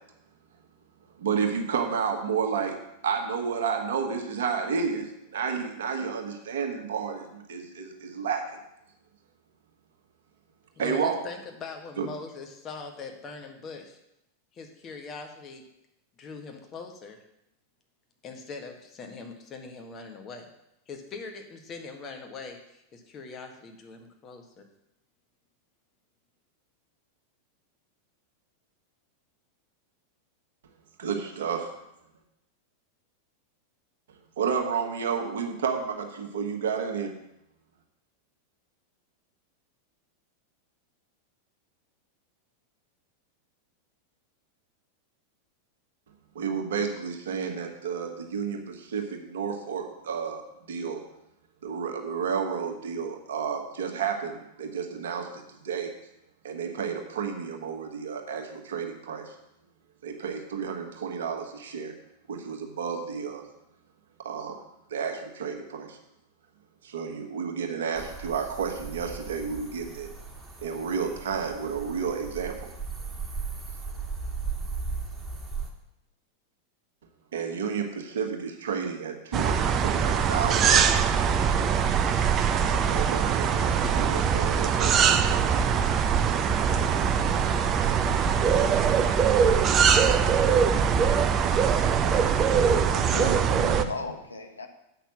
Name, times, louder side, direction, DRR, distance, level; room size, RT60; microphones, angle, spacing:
voice 1, 1.2-2.8 3.0-8.4 10.8-11.2 12.0-12.1 31.0-31.7 34.4-37.1 46.3-50.4 50.7-51.0 51.6-55.9 56.4-59.3 60.0-61.9 62.3-63.4 64.2-64.6 64.9-66.0 66.8-70.1 70.6-72.7 77.3-81.0 82.9-85.8, right 6 dB, 60° right, 4 dB, 1.5 m, -31 dB
voice 2, 10.8-14.0 14.5-15.6 16.2-17.2 18.2-20.5 20.9-24.7, left 4 dB, 30° left, 4 dB, 1.6 m, -41 dB
sound 1, 67.9-75.7, right 4 dB, 15° right, 1.7 m, -37 dB
sound 2, 79.3-93.8, right 7 dB, 30° right, 0.6 m, -22 dB
voice 3, 92.4-94.7, left 2 dB, 75° left, 5 dB, 1.1 m, -36 dB
8.1 x 5.9 x 7.5 m, 0.84 s
figure-of-eight pair, 90°, 0 cm